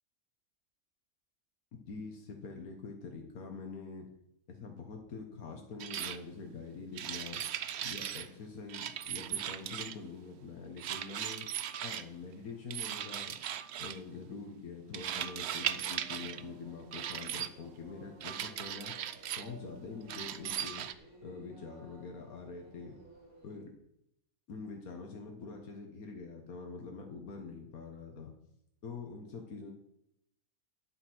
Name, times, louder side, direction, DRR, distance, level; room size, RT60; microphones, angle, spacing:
voice 1, 1.7-4.1 4.5-7.4 7.8-11.5 11.8-13.4 13.8-19.0 19.4-20.9 21.2-23.0 23.4-23.7 24.5-28.3 28.8-29.7, left 4 dB, 85° left, 2 dB, 1.8 m, -45 dB
sound 1, 5.8-6.2 6.9-8.3 8.7-10.1 10.8-12.0 12.7-14.0 14.9-16.4 16.9-17.5 18.2-19.5 20.1-20.9, right 10 dB, 60° right, 0.8 m, -38 dB
sound 2, 15.0-23.6, right 2 dB, 80° right, 3.1 m, -57 dB
10.5 x 8.0 x 6.2 m, 0.78 s
omnidirectional pair, 1.5 m